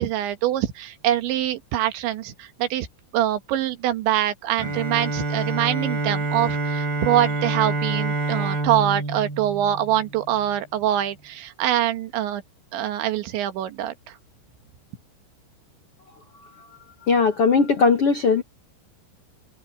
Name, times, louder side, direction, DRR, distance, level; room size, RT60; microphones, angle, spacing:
voice 1, 0.0-2.9 3.1-12.4 12.7-13.9, right 12 dB, 85° right, 3.9 m, -24 dB
Bowed string instrument, 4.6-10.5, right 3 dB, 60° right, 9.3 m, -27 dB
voice 2, 17.1-18.4, left 4 dB, 70° left, 1.3 m, -18 dB
omnidirectional pair, 5.1 m